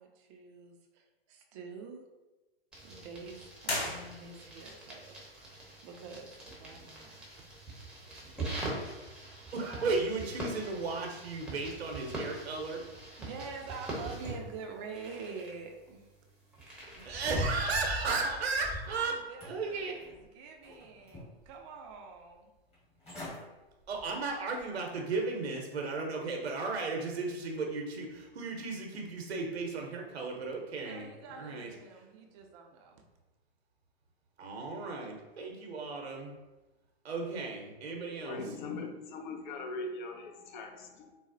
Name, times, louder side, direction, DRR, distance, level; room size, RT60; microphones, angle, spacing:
voice 1, 0.0-2.0 2.8-5.2 5.8-7.2 13.2-16.0 18.0-18.4 18.9-22.5 30.7-33.0, right 5 dB, 30° right, 3 dB, 0.4 m, -46 dB
sound 1, 2.7-17.4, right 2 dB, 5° right, 0.7 m, -43 dB
sound 2, 3.6-4.7, left 2 dB, 75° left, 0.9 m, -36 dB
voice 2, 9.5-12.8 16.8-19.1 19.5-20.0 23.9-31.7 34.4-36.3 37.0-38.4, right 3 dB, 90° right, 1 dB, 0.7 m, -35 dB
sound 3, 16.9-19.0 19.4-20.2 20.6-21.5 21.9-22.0 22.7-22.8 23.0-23.4 23.8-24.1 24.6-24.7, equal, 20° left, 1.4 m, -40 dB
voice 3, 38.0-41.1, left 3 dB, 50° left, 4 dB, 0.5 m, -41 dB
3.9 x 2.0 x 2.5 m, 1.1 s
hypercardioid pair, 115°, 31 cm